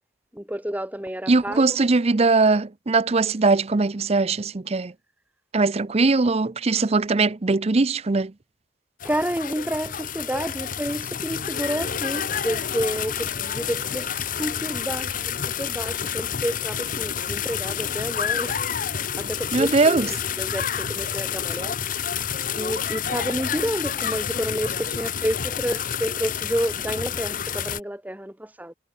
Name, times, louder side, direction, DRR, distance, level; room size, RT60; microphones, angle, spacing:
voice 1, 0.3-1.6 9.0-18.6 18.9-22.3 22.5-28.7, equal, 10° right, 2.2 m, -30 dB
voice 2, 1.3-4.9 5.5-8.3 19.5-20.1, right 3 dB, 35° right, 0.6 m, -20 dB
sound 1, 9.0-27.8, left 8 dB, 50° left, 0.9 m, -29 dB
head